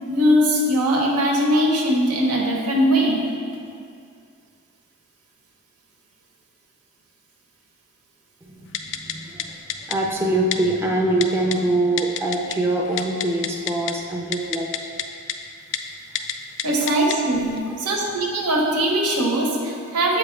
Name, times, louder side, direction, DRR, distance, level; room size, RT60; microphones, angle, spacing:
voice 1, 0.1-3.3 16.6-20.2, equal, 90° right, -1 dB, 1.0 m, -20 dB
voice 2, 8.4-9.6 9.9-14.7, right 2 dB, 10° right, -2 dB, 0.5 m, -24 dB
Typing, 8.7-9.1 9.4-9.5 9.7-10.0 10.5-10.6 11.2-11.6 12.0-12.6 12.8-13.9 14.3-15.0 15.3-15.4 15.7-15.8 16.1-16.3 16.6-17.2 17.6-17.7, left 10 dB, 55° left, 0.4 m, -27 dB
7.7 x 4.9 x 3.2 m, 2.3 s
head